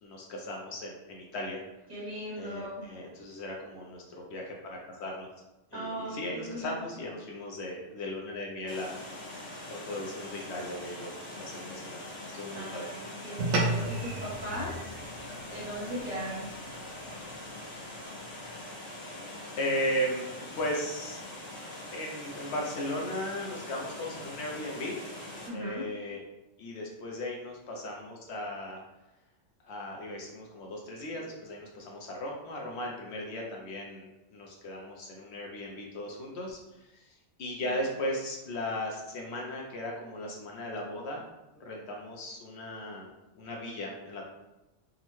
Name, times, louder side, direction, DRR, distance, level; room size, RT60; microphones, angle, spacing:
voice 1, 0.0-1.6 2.4-5.3 5.7-8.9 9.4-12.9 19.2-19.3 19.6-20.3 20.5-21.2 21.9-25.0 25.5-26.2 26.6-28.8 29.6-41.2 41.5-43.1 43.3-44.2, left 1 dB, 70° left, -1 dB, 0.8 m, -37 dB
voice 2, 1.9-2.9 5.7-6.8 12.5-14.9 15.5-16.5 25.5-25.8 37.6-37.8, equal, 35° right, -8 dB, 1.0 m, -38 dB
Water, 8.7-25.5, left 1 dB, 85° left, 1.5 m, -43 dB
sound 1, 13.4-18.0, right 2 dB, 75° right, 0.9 m, -35 dB
3.6 x 2.1 x 3.0 m, 0.96 s
omnidirectional pair, 1.3 m